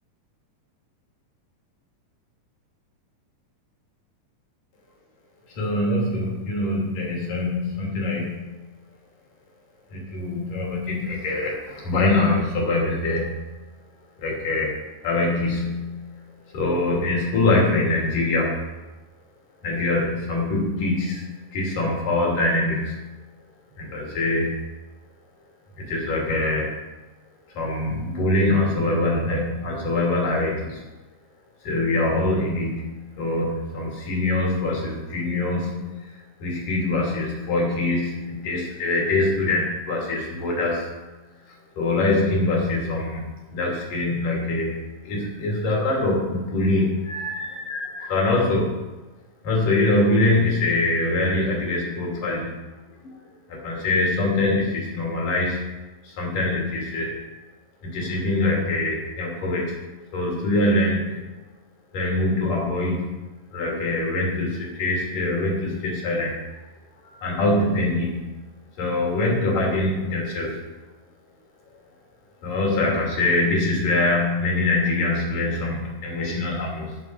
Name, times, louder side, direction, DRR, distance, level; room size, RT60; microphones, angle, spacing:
voice 1, 5.5-8.6 9.9-13.4 14.2-14.7 15.0-16.1 16.5-18.6 19.6-23.0 23.8-24.6 25.8-26.7 27.5-30.8 31.6-40.9 41.8-48.8 49.4-52.5 53.0-53.2 53.5-57.1 57.8-59.8 60.1-61.3 61.9-63.2 63.5-66.3 67.0-68.3 68.8-70.6 72.4-77.0, left 2 dB, 55° left, -3 dB, 3.8 m, -24 dB
15.0 x 6.8 x 4.6 m, 1.1 s
omnidirectional pair, 4.9 m